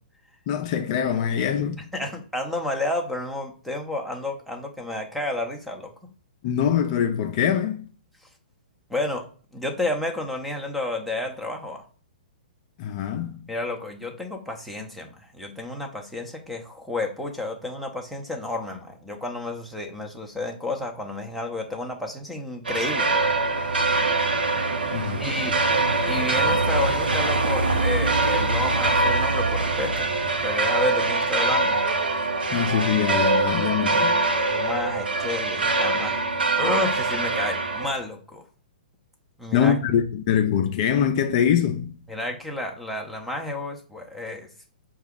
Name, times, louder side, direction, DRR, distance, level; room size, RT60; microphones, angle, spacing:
voice 1, 0.5-1.8 6.4-7.8 12.8-13.5 24.9-25.2 32.5-34.2 39.5-42.0, left 8 dB, 45° left, 0.5 m, -23 dB
voice 2, 1.9-5.9 8.9-9.3 9.5-11.8 13.5-23.2 25.2-25.6 26.1-30.1 30.4-31.7 34.5-36.2 36.6-38.4 39.4-39.8 42.1-44.5, left 2 dB, ahead, 0.7 m, -31 dB
sound 1, 22.6-37.9, right 3 dB, 85° right, 0.8 m, -23 dB
5.5 x 2.4 x 3.5 m
hypercardioid pair, 125°, 5 cm